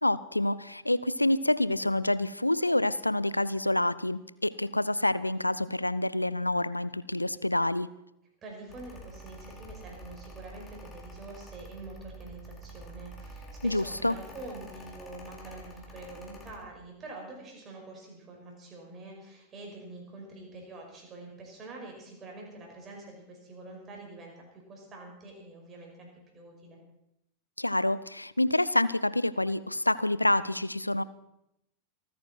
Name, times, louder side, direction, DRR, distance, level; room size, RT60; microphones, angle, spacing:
voice 1, 0.0-7.9 13.6-14.1 27.6-31.0, left 1 dB, 85° left, 18 dB, 0.4 m, -27 dB
voice 2, 8.4-26.8, right 2 dB, 25° right, 0 dB, 5.5 m, -46 dB
Mechanical fan, 8.7-16.6, right 1 dB, 20° left, 3.6 m, -47 dB
27.0 x 9.4 x 4.5 m, 0.83 s
figure-of-eight pair, 90°, 0 cm